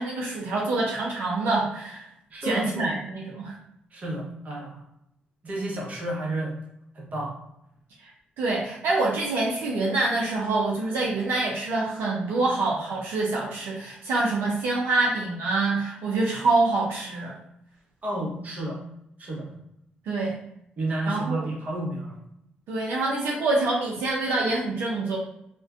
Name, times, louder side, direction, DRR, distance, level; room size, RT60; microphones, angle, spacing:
voice 1, 0.0-2.1 2.4-3.6 8.0-8.1 8.4-17.3 20.1-20.4 21.1-21.4 22.7-25.2, right 3 dB, 80° right, -3 dB, 0.4 m, -26 dB
voice 2, 2.3-3.0 3.9-4.8 5.4-6.6 6.9-7.3 18.0-18.8 19.2-19.5 20.8-22.2, right 1 dB, 45° right, -3 dB, 0.9 m, -31 dB
2.5 x 2.1 x 2.4 m, 0.78 s
cardioid pair, 70°, 4 cm